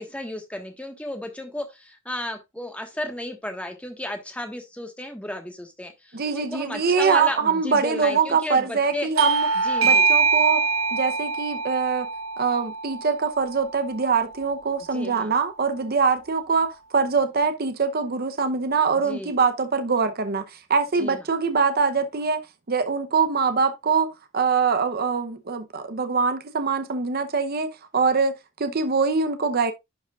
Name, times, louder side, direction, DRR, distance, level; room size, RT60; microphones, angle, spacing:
voice 1, 0.0-9.1 9.6-10.1 14.9-15.3 19.0-19.3 21.0-21.2, left 1 dB, 5° left, 1.4 m, -34 dB
voice 2, 6.1-9.5 9.8-10.7 10.9-12.1 12.4-22.4 22.7-29.7, right 5 dB, 50° right, 0.8 m, -23 dB
Bell / Doorbell, 9.2-14.2, right 5 dB, 85° right, 0.6 m, -24 dB
11.0 x 4.9 x 2.4 m
head